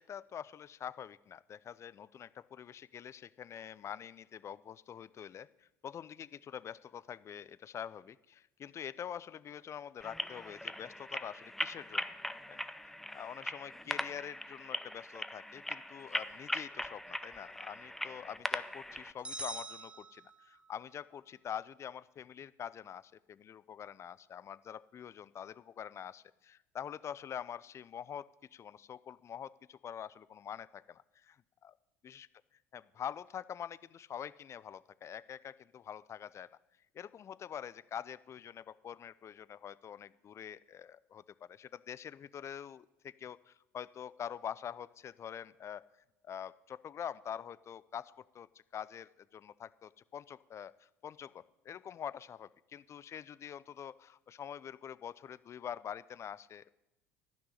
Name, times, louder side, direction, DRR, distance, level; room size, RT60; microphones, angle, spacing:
voice 1, 0.0-12.1 12.5-31.7 32.0-32.3 32.7-36.5 36.9-45.9 46.2-48.5 48.7-56.7, left 9 dB, 40° left, 18 dB, 0.5 m, -45 dB
sound 1, 10.0-19.1, left 1 dB, 5° left, 0.7 m, -40 dB
sound 2, 19.2-20.8, right 2 dB, 15° right, 1.2 m, -44 dB
13.5 x 6.1 x 9.9 m, 0.94 s
hypercardioid pair, 65°, 8 cm